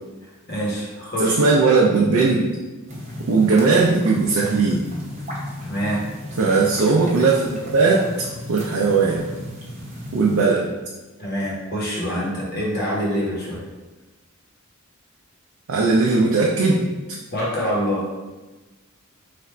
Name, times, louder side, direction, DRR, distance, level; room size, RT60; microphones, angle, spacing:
voice 1, 0.5-1.3 4.4-4.5 5.6-6.0 11.2-13.6 17.3-18.2, equal, 50° left, -5 dB, 1.1 m, -25 dB
voice 2, 1.2-2.5 3.3-4.8 6.4-8.1 8.5-9.3 10.1-10.7 15.7-16.9, right 4 dB, 80° right, -2 dB, 0.5 m, -18 dB
sound 1, 2.9-10.4, left 1 dB, 30° right, 0.8 m, -34 dB
3.3 x 2.4 x 4.3 m, 1.2 s
head